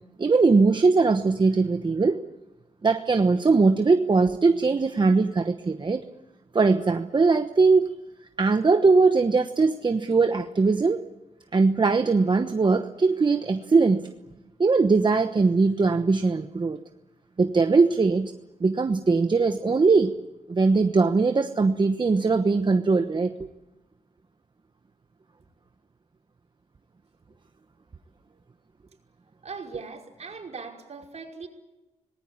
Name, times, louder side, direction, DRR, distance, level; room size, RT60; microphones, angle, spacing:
voice 1, 0.2-2.2 2.8-6.0 6.5-7.9 8.4-11.0 11.5-14.1 14.6-16.8 17.4-18.3 18.6-20.1 20.5-23.3, right 4 dB, 35° right, 7 dB, 1.1 m, -21 dB
voice 2, 29.4-31.5, right 4 dB, 60° right, 1 dB, 5.3 m, -39 dB
26.5 x 20.0 x 8.7 m, 1.1 s
wide cardioid pair, 95°, 13 cm